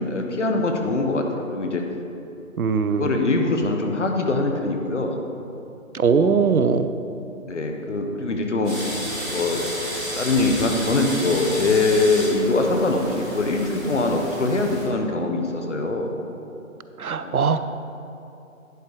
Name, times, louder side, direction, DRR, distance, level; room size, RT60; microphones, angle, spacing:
voice 1, 0.0-1.8 2.9-5.2 6.1-6.5 7.4-8.8 9.3-9.6 10.2-16.1 17.2-17.5, left 2 dB, 55° left, 3 dB, 1.1 m, -23 dB
voice 2, 2.6-3.1 5.9-6.9 17.0-17.6, right 5 dB, 85° right, 11 dB, 0.6 m, -20 dB
sound 1, 8.6-14.8, equal, 5° right, 0.9 m, -32 dB
11.0 x 4.7 x 4.8 m, 2.8 s
figure-of-eight pair, 150°, 42 cm